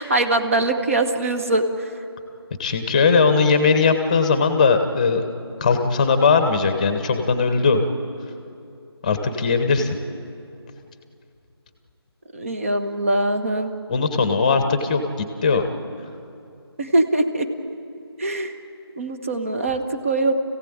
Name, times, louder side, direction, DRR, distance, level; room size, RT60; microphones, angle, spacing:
voice 1, 0.0-1.7 12.3-13.7 16.8-17.5 18.2-18.5 19.0-20.3, right 2 dB, 30° right, 5 dB, 1.5 m, -22 dB
voice 2, 2.6-5.3 5.6-7.8 9.0-9.9 13.9-15.0 15.4-15.7, left 4 dB, 15° left, 7 dB, 1.2 m, -19 dB
29.5 x 16.0 x 8.9 m, 2.6 s
figure-of-eight pair, 165°, 14 cm